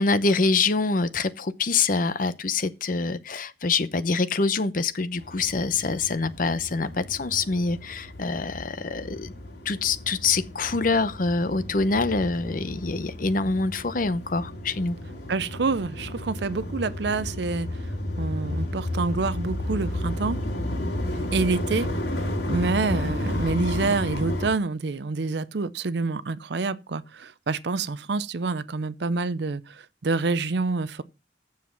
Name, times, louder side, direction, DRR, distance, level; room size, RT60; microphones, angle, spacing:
voice 1, 0.0-9.3 9.6-15.0, left 4 dB, 45° left, 0.7 m, -25 dB
sound 1, 5.2-24.5, left 1 dB, 65° left, 2.4 m, -32 dB
voice 2, 15.3-17.8 18.2-20.4 21.1-21.9 22.5-31.0, right 3 dB, 65° right, 0.6 m, -27 dB
8.5 x 7.3 x 5.9 m
head